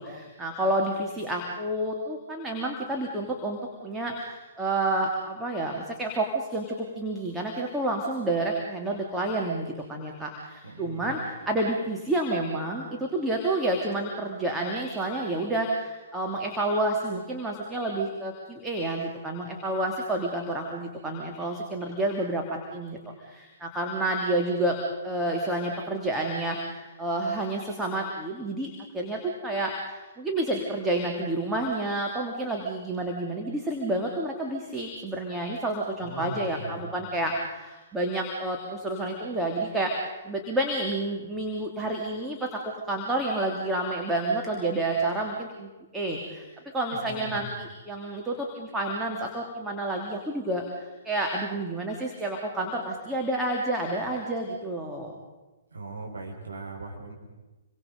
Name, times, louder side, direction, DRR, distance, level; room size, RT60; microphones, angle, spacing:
voice 1, 0.0-24.7 25.0-42.5 42.9-46.5 46.7-55.1, right 1 dB, 10° right, -1 dB, 3.0 m, -29 dB
voice 2, 10.6-11.2 36.0-36.9 46.9-47.5 55.7-57.1, right 2 dB, 75° right, 0 dB, 4.7 m, -39 dB
28.5 x 24.5 x 5.3 m, 1.2 s
figure-of-eight pair, 120°, 0 cm